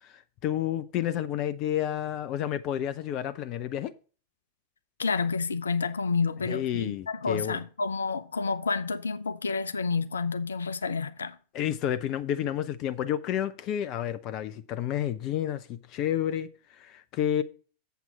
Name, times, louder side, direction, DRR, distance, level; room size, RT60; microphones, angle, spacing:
voice 1, 0.0-3.9 6.5-7.6 11.5-17.4, left 11 dB, 40° left, 0.6 m, -30 dB
voice 2, 5.0-11.4, left 4 dB, 70° left, 0.7 m, -29 dB
8.1 x 7.5 x 4.1 m
figure-of-eight pair, 90°, 0 cm